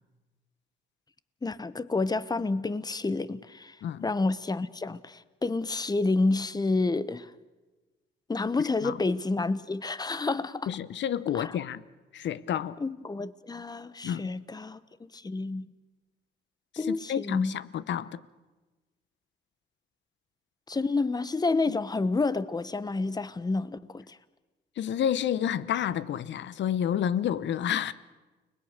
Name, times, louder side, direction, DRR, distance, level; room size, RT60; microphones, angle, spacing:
voice 1, 1.4-3.8 4.0-7.3 8.3-10.7 11.3-11.6 12.8-14.8 15.1-15.7 16.8-17.6 20.7-24.2, left 3 dB, 20° left, 1.0 m, -29 dB
voice 2, 10.7-11.8 12.1-12.8 14.0-14.3 16.7-18.2 21.7-21.8 24.8-27.9, left 9 dB, 65° left, 0.9 m, -30 dB
30.0 x 20.5 x 6.6 m
cardioid pair, 90°, 20 cm